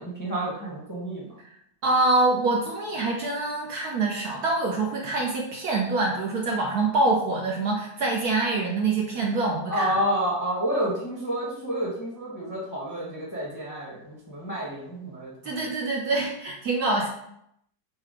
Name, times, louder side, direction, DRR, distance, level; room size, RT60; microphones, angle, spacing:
voice 1, 0.0-1.3 9.7-15.6, equal, 15° left, -5 dB, 0.7 m, -29 dB
voice 2, 1.8-9.9 15.4-17.1, right 2 dB, 65° right, -1 dB, 1.0 m, -25 dB
4.8 x 2.2 x 4.8 m, 0.75 s
omnidirectional pair, 2.1 m